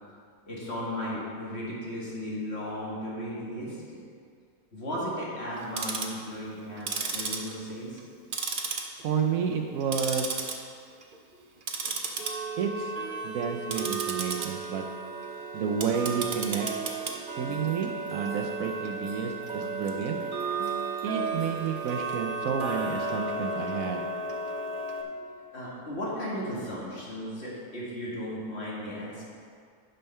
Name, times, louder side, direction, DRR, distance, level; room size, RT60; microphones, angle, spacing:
voice 1, 0.5-4.0 4.7-8.0 25.1-29.3, equal, 45° left, -6 dB, 2.2 m, -35 dB
Tick-tock, 5.6-6.2 6.8-8.1 8.3-9.2 9.5-10.5 10.9-11.2 11.6-25.0, right 4 dB, 45° right, 0.7 m, -33 dB
voice 2, 9.0-10.3 12.6-12.9 13.2-14.8 15.5-16.7 17.4-20.2 21.0-24.0, right 6 dB, 70° right, 3 dB, 1.1 m, -30 dB
sound 1, 15.9-22.2, left 4 dB, 85° left, 2.0 m, -46 dB
9.1 x 5.6 x 5.5 m, 2.2 s
omnidirectional pair, 1.6 m